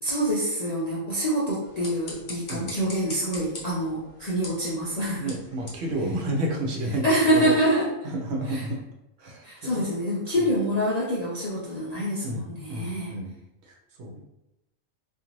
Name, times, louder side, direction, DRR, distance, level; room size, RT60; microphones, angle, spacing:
voice 1, 0.0-5.3 7.0-7.9 8.5-8.6 9.4-13.1, equal, 65° left, -7 dB, 0.4 m, -26 dB
sound 1, 1.6-6.8, left 2 dB, 45° left, 0.8 m, -43 dB
voice 2, 5.2-7.6 8.0-8.8 9.2-9.8 10.3-10.5 12.2-12.4 12.7-13.3 13.6-14.3, right 1 dB, 65° right, 1 dB, 0.8 m, -31 dB
2.5 x 2.5 x 3.0 m, 0.92 s
omnidirectional pair, 1.4 m